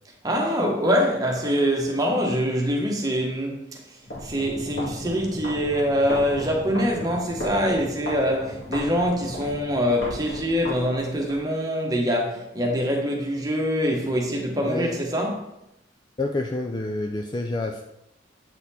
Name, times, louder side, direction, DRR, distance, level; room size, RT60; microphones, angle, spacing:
voice 1, 0.2-3.8 4.2-15.5, equal, 20° right, 1.2 m, -24 dB
sound 1, 4.0-11.4, left 1 dB, 60° left, 2.3 m, -36 dB
voice 2, 16.2-17.8, left 2 dB, 20° left, 0.3 m, -28 dB
8.0 x 4.2 x 4.2 m
head